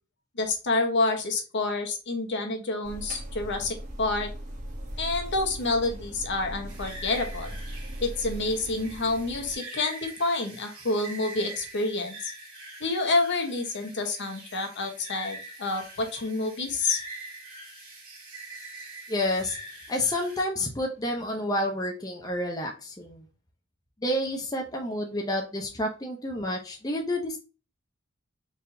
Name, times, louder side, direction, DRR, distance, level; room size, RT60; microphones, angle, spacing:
voice 1, 0.4-4.3 5.0-7.6 8.0-12.3 12.8-17.0, left 3 dB, 60° left, 3 dB, 1.1 m, -28 dB
sound 1, 2.8-9.6, equal, 35° right, 1.1 m, -39 dB
sound 2, 6.7-20.4, right 2 dB, 85° right, 2.4 m, -44 dB
voice 2, 19.1-19.6 19.9-23.3 24.0-27.4, left 1 dB, 20° left, 1 dB, 0.6 m, -29 dB
4.2 x 3.5 x 2.7 m, 0.33 s
head